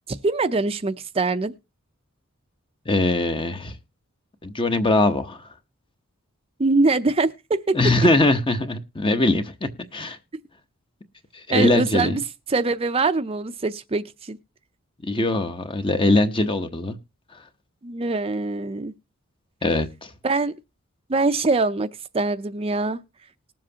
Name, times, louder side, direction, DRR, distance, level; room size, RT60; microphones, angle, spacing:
voice 1, 0.1-1.5 6.6-7.8 11.5-12.2 12.5-14.4 17.8-18.9 20.2-20.5 21.1-21.9 22.1-23.0, right 3 dB, 30° right, 0.6 m, -23 dB
voice 2, 2.8-3.8 4.4-5.5 7.7-10.2 11.3-12.2 15.0-17.0 17.3-17.5 19.6-20.1, left 2 dB, 25° left, 0.9 m, -22 dB
20.0 x 7.5 x 2.8 m
head